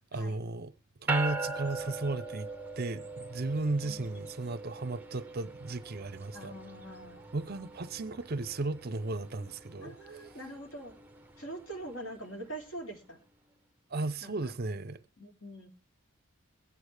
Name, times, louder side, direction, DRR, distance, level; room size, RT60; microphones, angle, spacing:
voice 1, 0.1-0.7 1.0-2.5 2.8-6.5 7.3-10.0 13.9-15.0, right 2 dB, 45° right, 0.6 m, -34 dB
sound 1, 1.1-12.7, right 3 dB, 10° right, 0.7 m, -41 dB
voice 2, 3.8-4.1 6.3-7.3 9.8-11.0 11.4-13.2 14.2-14.4 15.2-15.7, right 1 dB, 55° left, 3.1 m, -44 dB
22.5 x 8.3 x 3.3 m
head